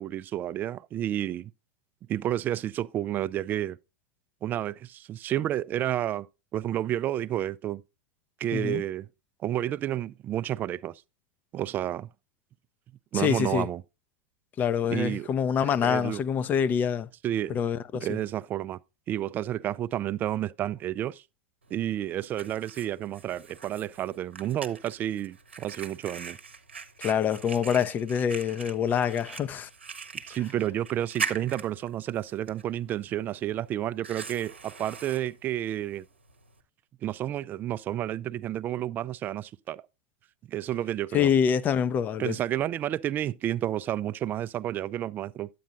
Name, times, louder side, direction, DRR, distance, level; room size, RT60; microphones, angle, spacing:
voice 1, 0.0-1.5 2.1-3.8 4.4-6.3 6.5-7.8 8.4-9.1 9.4-10.9 11.5-12.1 13.1-13.8 14.9-15.3 15.8-16.2 17.2-17.6 17.9-18.8 19.1-21.2 21.7-26.4 30.3-36.0 37.0-39.8 40.5-41.3 42.2-45.5, right 12 dB, 30° right, 0.4 m, -30 dB
voice 2, 13.1-13.7 14.6-17.1 17.5-18.1 27.0-29.7 41.1-42.4, left 8 dB, 30° left, 0.5 m, -26 dB
Fire, 21.6-36.6, right 5 dB, 90° right, 0.8 m, -42 dB
9.3 x 8.5 x 2.5 m
hypercardioid pair, 95°, 6 cm